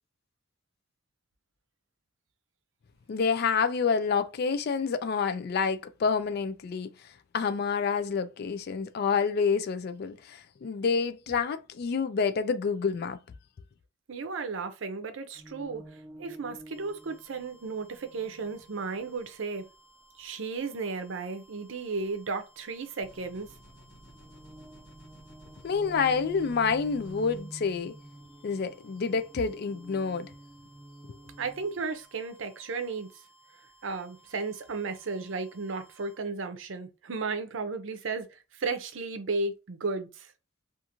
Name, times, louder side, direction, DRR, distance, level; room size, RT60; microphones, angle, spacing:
voice 1, 3.1-6.9 7.3-13.2 25.6-28.0 28.4-30.3, left 5 dB, 50° left, 0.3 m, -28 dB
voice 2, 14.1-19.7 20.2-23.5 31.4-33.2 33.8-40.3, right 4 dB, 70° right, 0.6 m, -34 dB
sound 1, 15.4-19.5 22.6-31.8, right 1 dB, 10° right, 0.8 m, -49 dB
sound 2, 16.7-36.2, right 2 dB, 20° left, 1.2 m, -61 dB
sound 3, 23.0-27.4, equal, 75° left, 1.2 m, -55 dB
2.5 x 2.4 x 2.9 m
head